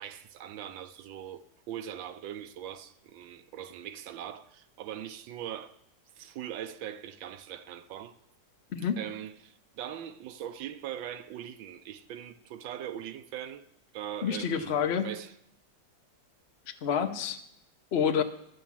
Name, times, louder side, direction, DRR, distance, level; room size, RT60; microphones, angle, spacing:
voice 1, 0.0-5.7 6.2-8.1 9.0-13.6 13.9-14.7 15.0-15.3, right 10 dB, 85° right, 1.4 m, -41 dB
voice 2, 14.2-15.1 16.8-17.4 17.9-18.2, left 7 dB, 60° left, 0.6 m, -28 dB
12.5 x 7.1 x 7.3 m
omnidirectional pair, 2.0 m